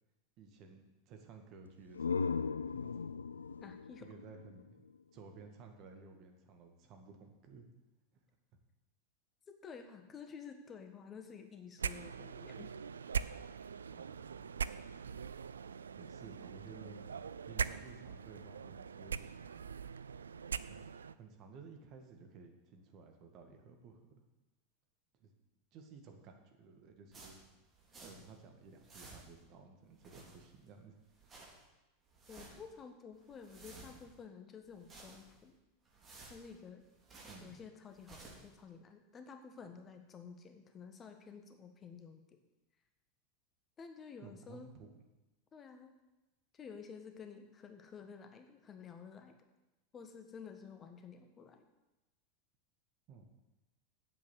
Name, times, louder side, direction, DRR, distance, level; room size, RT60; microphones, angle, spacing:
voice 1, 0.4-2.4 2.7-3.0 4.0-4.8 5.1-7.7 13.9-14.5 16.0-17.0 17.4-19.2 20.6-24.2 25.2-25.3 25.7-27.4 28.0-31.0 37.3-37.6 44.2-45.0 53.1-53.2, right 4 dB, 45° right, 4 dB, 1.9 m, -55 dB
sound 1, 1.7-5.3, left 5 dB, 80° left, 0.3 m, -38 dB
voice 2, 3.6-4.1 9.5-12.7 16.7-16.9 32.3-35.5 36.3-36.8 37.4-42.4 43.8-44.7 45.5-45.9 46.5-49.4 49.9-51.7, left 6 dB, 25° left, 6 dB, 1.3 m, -51 dB
sound 2, 11.8-21.1, right 6 dB, 75° right, 0.3 m, -42 dB
sound 3, 27.1-28.4 28.7-29.5 29.9-30.7 31.0-31.7 32.1-32.7 33.1-34.2 34.6-35.5 35.9-37.6 37.9-38.5, right 3 dB, 25° right, 3.7 m, -56 dB
8.5 x 7.6 x 8.1 m, 1.0 s
figure-of-eight pair, 85°, 0 cm